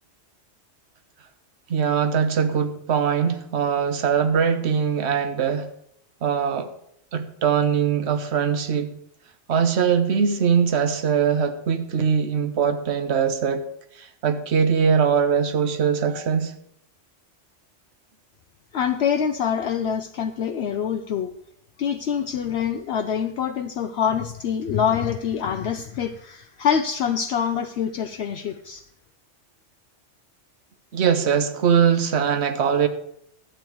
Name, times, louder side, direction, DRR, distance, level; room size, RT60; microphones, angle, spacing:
voice 1, 1.7-5.7 6.2-6.7 7.1-9.0 9.5-13.6 13.9-16.5 30.9-32.9, right 7 dB, 65° right, 9 dB, 1.2 m, -21 dB
voice 2, 18.7-21.3 21.8-28.8, left 8 dB, 65° left, 7 dB, 0.8 m, -25 dB
11.5 x 8.9 x 4.6 m, 0.71 s
omnidirectional pair, 1.2 m